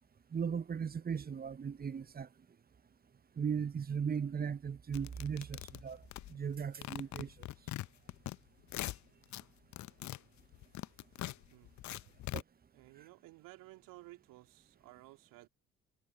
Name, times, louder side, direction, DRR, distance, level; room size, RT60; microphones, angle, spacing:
voice 1, 0.3-2.3 3.4-6.0 6.3-7.3 12.3-12.4, right 7 dB, 25° right, 0.9 m, -37 dB
sound 1, 4.9-6.6 6.8-8.4 8.6-9.4 9.7-12.4, left 15 dB, 55° left, 0.9 m, -42 dB
voice 2, 11.5-12.2 12.7-15.5, right 19 dB, 65° right, 3.7 m, -56 dB
figure-of-eight pair, 45°, 35 cm